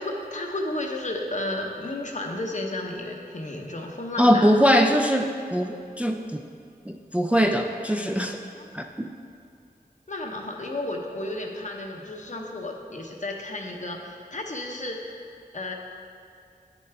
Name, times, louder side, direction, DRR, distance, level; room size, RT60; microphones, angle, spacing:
voice 1, 0.0-4.5 8.5-8.7 10.1-15.2 15.5-15.7, left 1 dB, 50° left, 1 dB, 0.9 m, -33 dB
voice 2, 4.2-6.4 6.9-8.4 8.7-9.1, equal, 10° right, 4 dB, 0.4 m, -22 dB
9.1 x 7.0 x 3.4 m, 2.4 s
wide cardioid pair, 55°, 16 cm